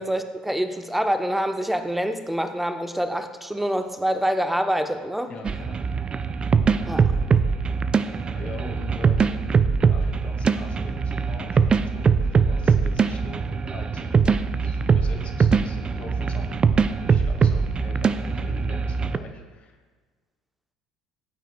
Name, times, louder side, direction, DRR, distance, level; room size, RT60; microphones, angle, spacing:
voice 1, 0.0-5.3 6.8-7.2, equal, 5° right, 7 dB, 0.9 m, -26 dB
voice 2, 5.3-5.8 8.3-9.5 9.9-19.7, left 4 dB, 40° left, 2 dB, 2.0 m, -42 dB
sound 1, 5.4-19.2, right 5 dB, 30° right, 0.5 m, -22 dB
16.0 x 9.0 x 2.3 m, 1.4 s
figure-of-eight pair, 60°, 3 cm